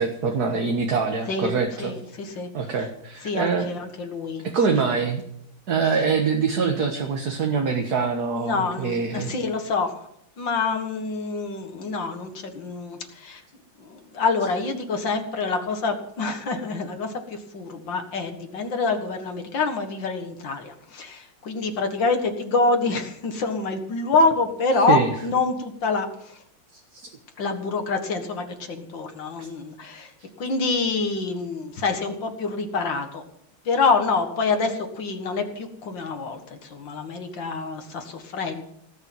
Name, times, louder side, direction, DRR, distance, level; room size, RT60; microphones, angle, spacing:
voice 1, 0.0-1.9 2.5-3.7 4.4-5.2 5.7-9.3 24.9-25.1 26.7-27.1 29.4-29.5, right 5 dB, 50° right, 3 dB, 1.9 m, -24 dB
voice 2, 1.8-2.5 3.2-4.9 8.4-9.9 10.4-13.4 13.8-26.4 27.4-30.1 30.4-33.2 33.7-38.6, left 4 dB, 65° left, 5 dB, 2.4 m, -26 dB
18.0 x 6.9 x 9.3 m, 0.71 s
omnidirectional pair, 2.2 m